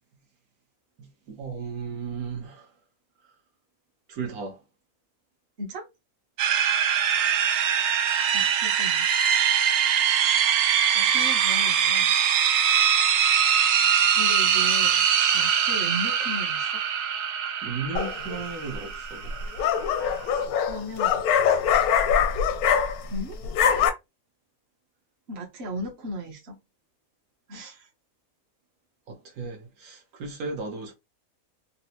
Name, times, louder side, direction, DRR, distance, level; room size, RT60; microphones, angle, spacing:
voice 1, 1.0-2.7 3.2-3.3 4.1-4.6 17.6-19.3 29.1-30.9, right 4 dB, 80° right, 1.4 m, -35 dB
sound 1, 6.4-20.4, right 8 dB, 65° right, 0.7 m, -23 dB
voice 2, 8.3-9.1 10.9-12.1 14.1-15.1 15.3-16.8 20.7-21.2 23.1-23.4 25.3-26.6 27.5-27.9, equal, 50° right, 1.1 m, -36 dB
sound 2, 18.0-18.4 19.3-23.2 23.4-23.9, left 8 dB, 85° left, 1.1 m, -23 dB
4.1 x 2.1 x 2.7 m
omnidirectional pair, 1.5 m